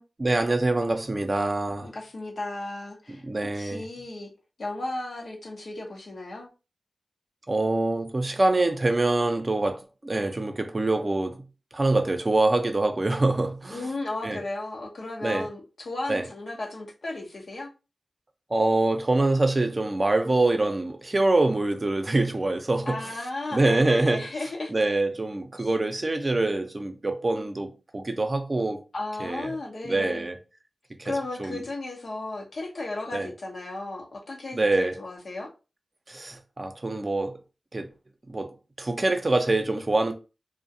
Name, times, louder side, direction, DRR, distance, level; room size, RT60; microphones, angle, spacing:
voice 1, 0.2-1.9 3.3-3.8 7.5-11.4 11.7-13.9 14.2-14.4 15.2-15.5 16.1-16.2 18.5-23.0 23.5-24.2 24.7-28.8 29.2-29.5 29.8-30.4 31.0-31.1 31.4-31.6 33.1-33.3 34.5-34.9 36.1-37.4 37.7-37.9 38.3-40.1, right 2 dB, 40° right, 0.5 m, -25 dB
voice 2, 1.8-3.2 3.5-4.3 4.6-6.5 13.7-17.7 22.9-24.7 25.6-25.7 28.9-30.3 31.0-35.5, left 2 dB, 75° left, 0.7 m, -35 dB
2.4 x 2.1 x 2.6 m
cardioid pair, 45°, 0 cm